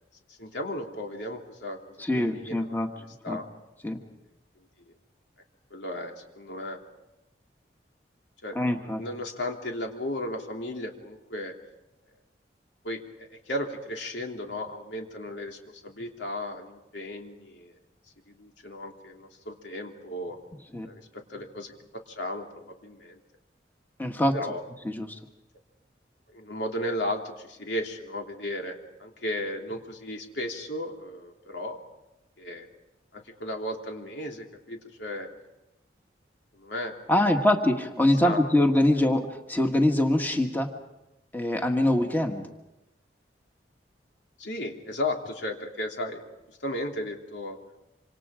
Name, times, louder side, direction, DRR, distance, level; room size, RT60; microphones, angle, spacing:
voice 1, 0.3-3.4 5.7-6.8 8.4-11.6 12.8-17.8 18.3-20.4 20.8-23.2 24.3-24.6 26.3-31.8 32.4-32.7 33.1-35.3 36.5-36.9 38.2-38.5 44.4-46.2 46.6-47.6, left 1 dB, 90° left, 2 dB, 3.2 m, -35 dB
voice 2, 2.0-2.9 3.3-3.4 3.8-4.0 8.5-9.0 20.7-20.9 24.0-24.3 24.8-25.1 37.1-39.2 39.5-40.7 41.3-42.5, left 1 dB, 10° left, 4 dB, 1.6 m, -23 dB
26.5 x 26.5 x 5.0 m, 0.94 s
head